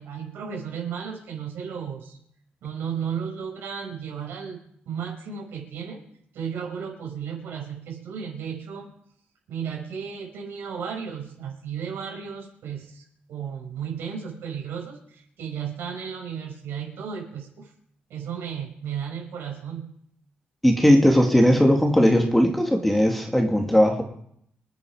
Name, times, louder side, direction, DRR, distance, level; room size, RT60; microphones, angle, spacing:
voice 1, 0.0-2.2 2.6-6.0 6.3-8.9 9.5-17.7 18.1-19.9, right 7 dB, 80° right, -1 dB, 5.8 m, -34 dB
voice 2, 20.6-24.0, equal, 5° left, 2 dB, 2.3 m, -18 dB
26.5 x 9.6 x 5.1 m, 0.69 s
cardioid pair, 145°, 4 cm